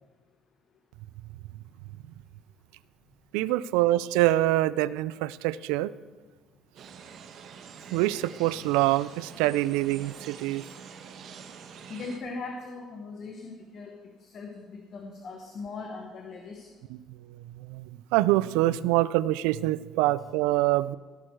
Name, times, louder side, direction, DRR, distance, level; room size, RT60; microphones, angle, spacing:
voice 1, 3.3-5.9 7.9-10.6 17.1-21.0, right 16 dB, 85° right, 18 dB, 0.3 m, -25 dB
sound 1, 6.8-12.2, right 6 dB, 60° right, 1.2 m, -46 dB
voice 2, 11.9-16.7, left 3 dB, 50° left, 3 dB, 1.3 m, -40 dB
16.5 x 6.4 x 4.6 m, 1.4 s
supercardioid pair, 85°, 0 cm